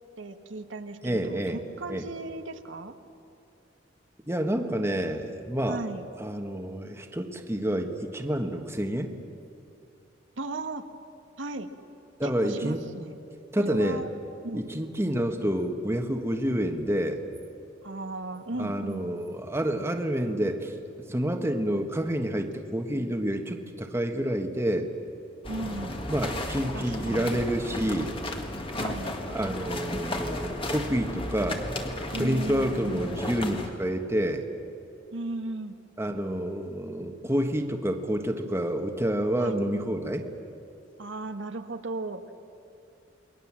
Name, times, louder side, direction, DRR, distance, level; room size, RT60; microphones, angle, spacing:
voice 1, 0.2-2.9 5.7-6.1 10.4-10.8 11.4-11.7 12.2-13.2 13.6-14.1 14.4-14.6 17.8-19.1 25.5-26.0 26.7-27.4 28.8-29.1 32.1-33.3 35.1-35.8 39.4-39.6 41.0-42.2, right 2 dB, 85° right, 6 dB, 1.4 m, -36 dB
voice 2, 1.0-1.6 1.9-2.0 4.3-5.8 6.2-9.1 12.2-12.9 13.5-14.0 14.5-17.2 18.6-24.9 26.1-28.1 29.3-31.6 32.2-34.5 36.0-40.2, right 1 dB, 15° right, 5 dB, 1.5 m, -28 dB
sound 1, 25.4-33.7, left 1 dB, 30° left, 2.0 m, -34 dB
29.0 x 21.5 x 7.5 m, 2.6 s
head